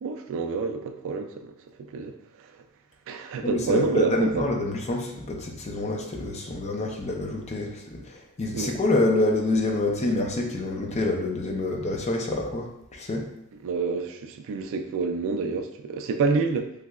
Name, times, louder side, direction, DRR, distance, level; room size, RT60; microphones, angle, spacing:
voice 1, 0.0-1.5 1.8-2.5 3.1-4.5 8.5-8.7 13.6-16.7, right 4 dB, 60° right, 6 dB, 0.3 m, -28 dB
voice 2, 3.4-13.2, left 2 dB, 30° left, 1 dB, 0.4 m, -27 dB
3.2 x 2.7 x 2.3 m, 0.79 s
head